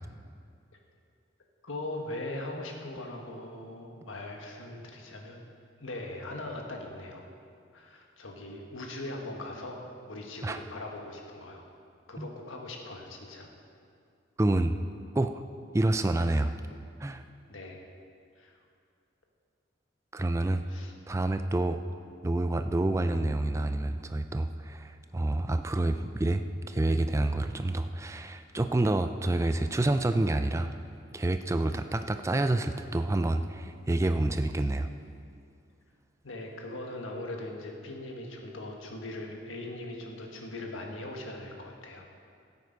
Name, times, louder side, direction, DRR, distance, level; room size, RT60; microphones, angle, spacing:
voice 1, 1.6-5.5 5.8-7.2 7.7-11.7 12.1-13.5 17.5-17.9 18.4-18.5 20.7-20.9 36.2-42.0, left 1 dB, 90° left, 1 dB, 1.6 m, -40 dB
voice 2, 14.4-14.8 15.1-15.4 15.7-16.5 17.0-17.2 20.1-20.6 21.1-21.8 22.2-30.7 31.1-34.9, right 2 dB, 15° right, 8 dB, 0.3 m, -28 dB
14.0 x 8.2 x 5.3 m, 2.3 s
head